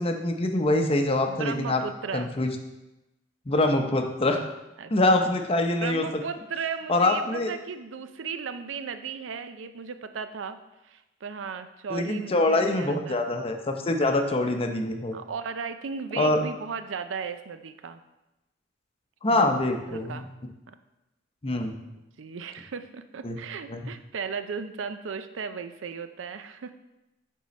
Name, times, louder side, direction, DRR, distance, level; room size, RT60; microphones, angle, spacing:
voice 1, 0.0-1.8 2.1-2.5 3.5-4.4 4.9-6.1 6.9-7.5 11.9-15.1 16.2-16.4 19.2-20.3 21.4-21.8 23.2-23.4 23.7-23.8, left 2 dB, 30° left, 4 dB, 0.7 m, -24 dB
voice 2, 1.3-2.3 4.8-5.2 5.8-10.6 10.8-13.2 14.0-14.2 15.1-18.0 19.3-19.6 19.9-20.3 20.7-20.8 22.2-26.7, right 6 dB, 75° right, 10 dB, 0.5 m, -36 dB
9.2 x 3.7 x 4.1 m, 0.97 s
head